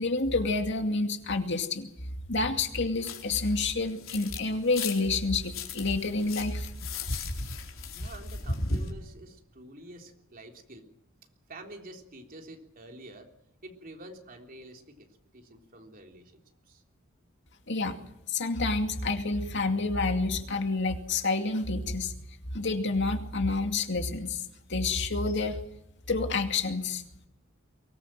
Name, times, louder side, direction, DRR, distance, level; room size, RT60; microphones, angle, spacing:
voice 1, 0.0-1.9 2.3-6.7 17.7-17.9 18.3-22.1 22.5-24.4 24.7-25.6 26.1-27.0, left 3 dB, 60° left, 5 dB, 2.4 m, -28 dB
sound 1, 3.0-4.4 4.7-8.9, left 2 dB, 75° left, 4.3 m, -36 dB
voice 2, 7.7-10.9 11.5-13.3 13.6-15.1 15.3-16.4 16.7-16.8, right 1 dB, 45° right, 2 dB, 3.6 m, -48 dB
24.0 x 19.5 x 7.6 m, 0.80 s
head